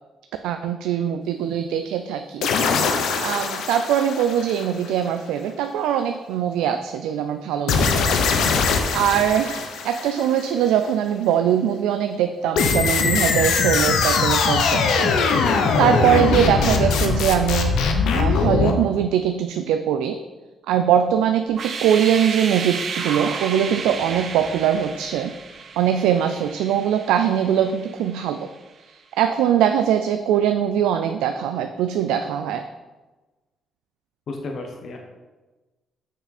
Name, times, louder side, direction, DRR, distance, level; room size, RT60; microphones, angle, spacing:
voice 1, 0.4-15.1 15.8-17.8 18.1-20.2 20.7-25.3 25.8-28.5 28.9-32.7, right 9 dB, 85° right, 8 dB, 0.3 m, -22 dB
sound 1, 2.4-5.1 7.7-10.5 12.6-18.7, left 5 dB, 75° left, 0.8 m, -21 dB
sound 2, 21.5-28.4, right 5 dB, 60° right, 0.8 m, -32 dB
voice 2, 34.3-35.0, left 3 dB, 60° left, 2 dB, 1.1 m, -32 dB
6.6 x 6.1 x 4.1 m, 1.2 s
supercardioid pair, 60°, 0 cm